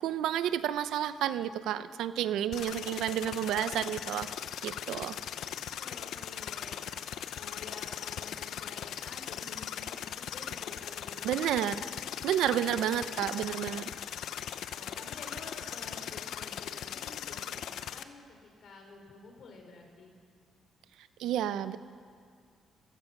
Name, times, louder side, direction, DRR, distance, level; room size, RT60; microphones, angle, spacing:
voice 1, 0.0-4.3 4.6-5.2 11.2-11.8 12.2-13.9 21.2-21.8, right 11 dB, 85° right, 13 dB, 0.7 m, -30 dB
sound 1, 2.5-18.0, left 10 dB, 80° left, 0.8 m, -39 dB
voice 2, 5.8-11.5 12.6-13.7 14.7-20.1, left 3 dB, 65° left, 3 dB, 4.6 m, -50 dB
30.0 x 16.5 x 6.0 m, 2.2 s
cardioid pair, 90°, 0 cm